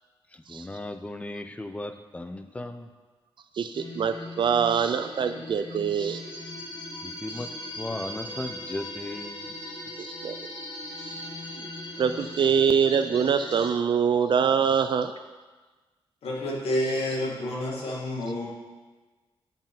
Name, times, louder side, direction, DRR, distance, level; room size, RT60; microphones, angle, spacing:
voice 1, 0.3-2.9 7.0-9.6, left 2 dB, 15° left, 8 dB, 0.6 m, -37 dB
voice 2, 3.6-6.2 10.0-10.4 11.0-11.2 12.0-15.1, right 7 dB, 55° right, 9 dB, 0.4 m, -24 dB
sound 1, 3.7-13.7, left 1 dB, 70° left, 3.1 m, -39 dB
voice 3, 16.2-18.5, left 1 dB, 90° left, -3 dB, 2.1 m, -29 dB
7.9 x 5.4 x 7.1 m, 1.3 s
wide cardioid pair, 125°, 10 cm